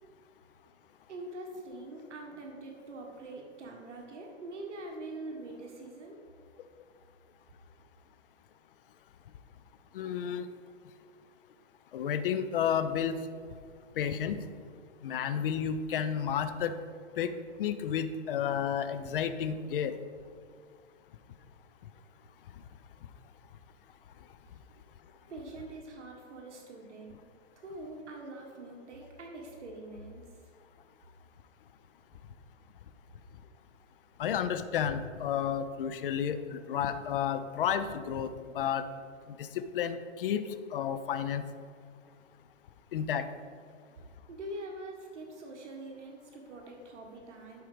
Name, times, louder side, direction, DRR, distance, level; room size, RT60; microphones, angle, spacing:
voice 1, 1.1-6.2 25.2-27.1 27.6-30.3 44.3-47.7, right 2 dB, 65° right, 0 dB, 1.7 m, -44 dB
voice 2, 9.9-10.5 11.9-13.2 14.0-14.4 15.0-16.8 17.2-19.9 34.2-38.9 39.3-41.4 42.9-43.3, left 8 dB, 45° left, 11 dB, 0.6 m, -31 dB
11.5 x 4.7 x 5.1 m, 2.1 s
hypercardioid pair, 150°, 38 cm